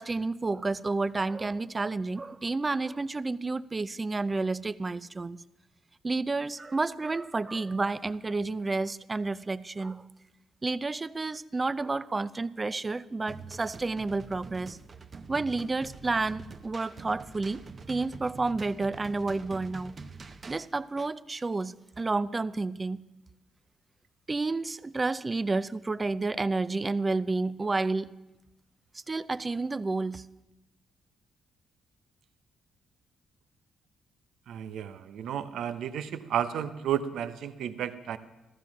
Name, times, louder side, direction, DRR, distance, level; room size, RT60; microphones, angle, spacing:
voice 1, 0.0-5.4 6.0-10.0 10.6-14.8 15.3-20.0 20.5-23.0 24.3-28.1 29.1-30.2, right 3 dB, 25° right, 16 dB, 0.5 m, -30 dB
sound 1, 13.3-20.7, right 4 dB, 40° right, 0.9 m, -45 dB
voice 2, 34.5-38.2, right 9 dB, 75° right, 11 dB, 0.8 m, -32 dB
14.5 x 14.0 x 5.9 m, 0.97 s
cardioid pair, 100°, 0 cm